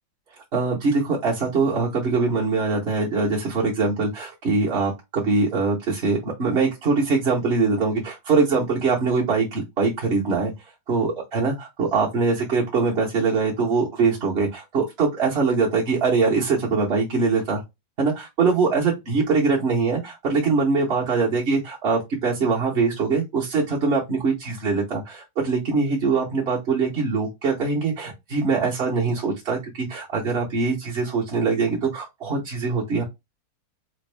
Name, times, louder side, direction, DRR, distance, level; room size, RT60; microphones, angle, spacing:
voice 1, 0.5-10.5 10.9-17.6 18.0-33.0, right 4 dB, 45° right, 1.0 m, -23 dB
4.2 x 2.3 x 3.3 m
omnidirectional pair, 1.9 m